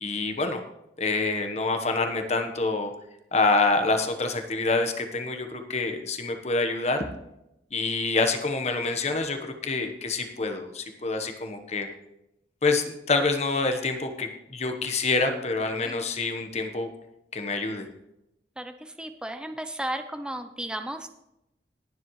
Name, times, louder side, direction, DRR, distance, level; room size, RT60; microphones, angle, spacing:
voice 1, 0.0-0.6 1.0-2.9 3.3-7.0 7.7-11.9 12.6-16.9 17.3-17.9, left 3 dB, 40° left, 5 dB, 1.1 m, -26 dB
voice 2, 15.8-16.2 18.6-21.1, right 1 dB, 5° right, 7 dB, 0.5 m, -35 dB
19.5 x 7.6 x 3.1 m, 0.86 s
head